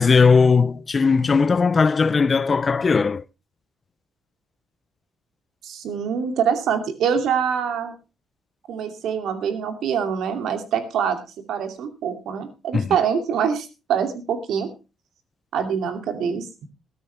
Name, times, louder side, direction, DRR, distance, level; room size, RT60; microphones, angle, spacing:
voice 1, 0.0-3.2 12.7-13.0, left 5 dB, 35° left, 0.6 m, -18 dB
voice 2, 5.6-7.9 8.7-11.2 11.5-14.7 15.5-16.5, right 7 dB, 80° right, 2.6 m, -24 dB
15.5 x 13.0 x 3.4 m
cardioid pair, 90°, 0 cm